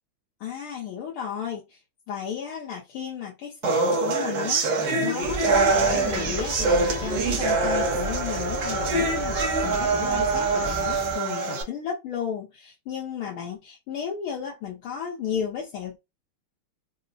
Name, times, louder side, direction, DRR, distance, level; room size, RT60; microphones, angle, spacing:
voice 1, 0.4-1.8 2.1-16.0, left 8 dB, 80° left, 1.7 m, -34 dB
sound 1, 3.6-11.6, right 3 dB, 65° right, 1.5 m, -24 dB
sound 2, 5.2-11.2, right 2 dB, 35° right, 1.0 m, -34 dB
4.6 x 2.1 x 2.6 m
omnidirectional pair, 2.4 m